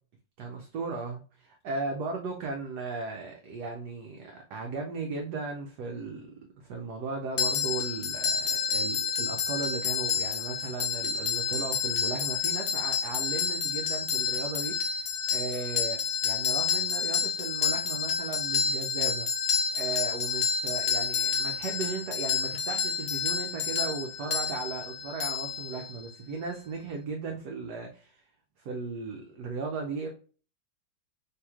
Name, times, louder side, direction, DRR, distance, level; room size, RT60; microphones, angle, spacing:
voice 1, 0.4-28.2 28.6-30.1, right 4 dB, 75° right, 0.9 m, -36 dB
sound 1, 7.4-26.2, left 6 dB, 65° left, 1.0 m, -29 dB
3.2 x 3.0 x 2.3 m
omnidirectional pair, 2.1 m